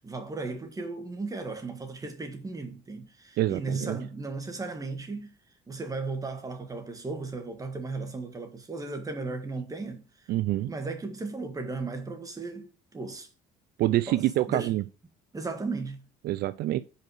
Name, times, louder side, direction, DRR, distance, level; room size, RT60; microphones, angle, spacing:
voice 1, 0.0-5.3 5.7-10.1 10.7-13.3 14.1-14.8 15.3-16.1, right 3 dB, 20° right, 1.6 m, -36 dB
voice 2, 3.4-4.0 10.3-10.7 13.8-14.8 16.2-16.8, right 15 dB, 70° right, 0.4 m, -26 dB
5.5 x 4.9 x 6.3 m
cardioid pair, 110°, 17 cm